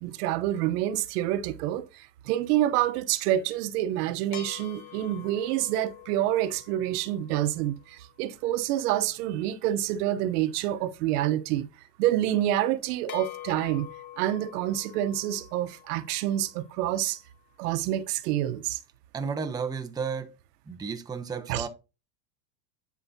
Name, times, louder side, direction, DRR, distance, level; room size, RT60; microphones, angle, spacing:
voice 1, 0.0-11.7 12.0-13.9 14.2-17.2 17.6-18.8 21.5-21.7, right 13 dB, 65° right, 1.0 m, -27 dB
sound 1, 4.3-8.0 13.1-17.5, left 11 dB, 45° left, 2.0 m, -46 dB
voice 2, 19.1-20.3 20.7-21.7, right 5 dB, 10° right, 0.7 m, -32 dB
10.5 x 4.9 x 2.8 m
supercardioid pair, 110°, 49 cm